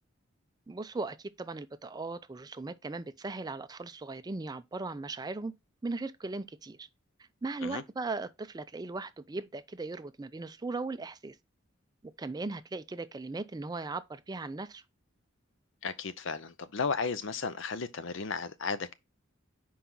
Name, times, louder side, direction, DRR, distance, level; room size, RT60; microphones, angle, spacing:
voice 1, 0.7-5.5 5.8-6.9 7.4-11.4 12.2-14.8, right 3 dB, 20° right, 0.4 m, -38 dB
voice 2, 15.8-18.9, left 5 dB, 65° left, 0.6 m, -34 dB
5.7 x 4.6 x 3.8 m
head